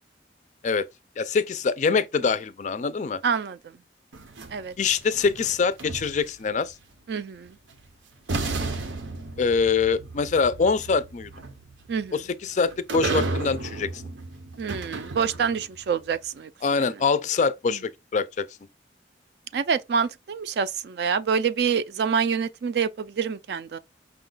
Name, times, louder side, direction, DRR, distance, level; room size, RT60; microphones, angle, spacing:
voice 1, 1.2-3.2 4.8-6.8 9.4-11.3 12.1-14.0 16.6-18.5, left 5 dB, 40° left, 0.3 m, -24 dB
voice 2, 3.2-3.8 4.5-4.7 7.1-7.6 11.9-12.2 14.6-16.5 16.8-16.9 17.7-17.8 19.5-23.8, right 6 dB, 60° right, 0.3 m, -27 dB
sound 1, 4.1-6.5 7.7-7.8 8.3-15.8, right 3 dB, 90° right, 0.7 m, -33 dB
5.5 x 2.3 x 3.8 m
head